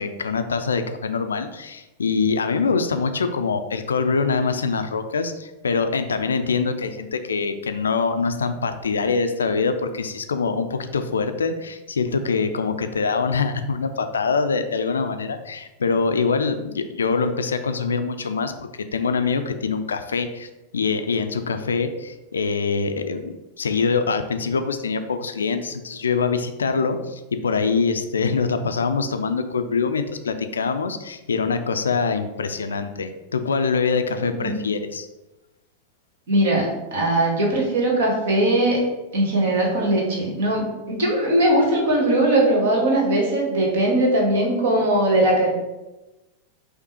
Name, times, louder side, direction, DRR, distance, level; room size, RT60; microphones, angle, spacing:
voice 1, 0.0-35.1, left 5 dB, 70° left, 8 dB, 0.3 m, -24 dB
voice 2, 36.3-38.8 39.1-45.5, right 1 dB, 60° right, -1 dB, 1.4 m, -20 dB
5.2 x 2.1 x 4.2 m, 1.0 s
figure-of-eight pair, 90°, 0 cm